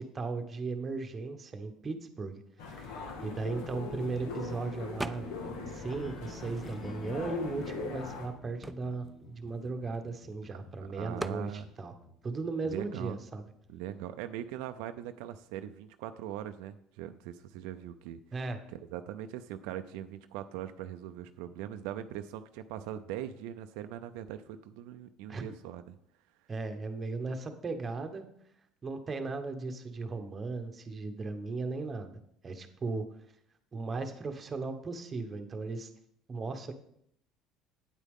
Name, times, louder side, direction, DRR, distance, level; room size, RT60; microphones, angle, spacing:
voice 1, 0.0-2.4 2.7-5.3 5.7-11.9 12.2-13.4 18.3-18.6 25.3-25.5 26.5-28.3 28.8-32.1 32.4-33.0 33.7-35.9 36.3-36.7, right 3 dB, 25° right, 6 dB, 1.1 m, -37 dB
sound 1, 2.6-8.3, left 4 dB, 85° left, 1.6 m, -40 dB
sound 2, 5.0-15.1, left 3 dB, 30° left, 0.9 m, -51 dB
sound 3, 5.0-5.6 5.9-7.2 7.8-7.9 8.1-10.3 11.2-11.5, right 2 dB, 10° right, 0.3 m, -42 dB
voice 2, 10.9-11.7 12.6-13.2 13.7-18.2 18.7-26.0, right 11 dB, 85° right, 9 dB, 0.5 m, -41 dB
9.1 x 8.3 x 3.7 m, 0.72 s
cardioid pair, 120°, 0 cm